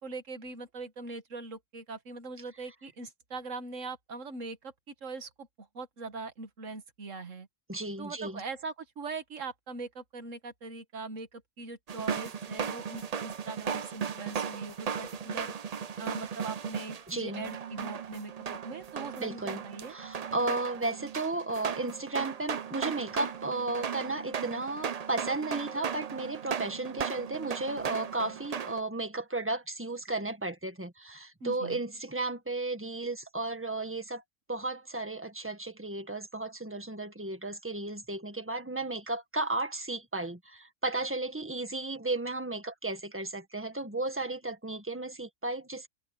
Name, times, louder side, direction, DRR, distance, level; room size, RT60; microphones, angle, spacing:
voice 1, 0.0-7.5 8.0-15.5 16.0-19.9 31.4-31.8, right 3 dB, 75° right, 2.0 m, -41 dB
voice 2, 7.7-8.4 17.1-17.5 19.2-34.2 34.5-45.9, right 2 dB, 10° right, 1.7 m, -34 dB
sound 1, 11.9-28.8, right 7 dB, 40° right, 0.6 m, -36 dB
omnidirectional pair, 1.3 m